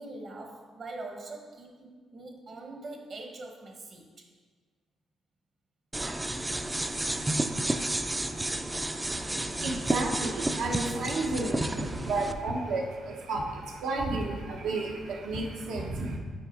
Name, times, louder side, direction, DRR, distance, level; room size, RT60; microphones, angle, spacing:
voice 1, 0.0-4.1, right 2 dB, 50° right, 2 dB, 1.1 m, -43 dB
sound 1, 5.9-12.3, right 1 dB, 15° right, 0.3 m, -31 dB
voice 2, 9.1-16.2, right 2 dB, 80° right, 1 dB, 0.9 m, -32 dB
5.7 x 4.8 x 4.3 m, 1.5 s
cardioid pair, 90°, 0 cm